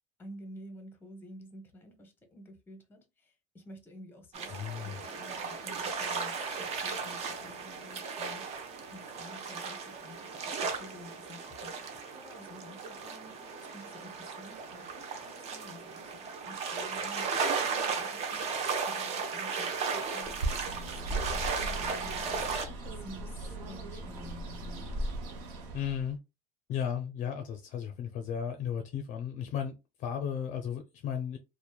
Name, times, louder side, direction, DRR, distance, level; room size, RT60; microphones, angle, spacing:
voice 1, 0.2-17.3 17.6-22.5 22.9-24.8, left 1 dB, 10° left, 0.8 m, -51 dB
sound 1, 4.3-22.7, right 5 dB, 40° right, 0.5 m, -36 dB
voice 2, 4.5-5.0 25.7-26.2 26.7-31.4, left 8 dB, 45° left, 0.4 m, -35 dB
Bird, 20.2-26.1, right 1 dB, 85° right, 0.7 m, -38 dB
2.9 x 2.0 x 2.2 m
cardioid pair, 135°, 18 cm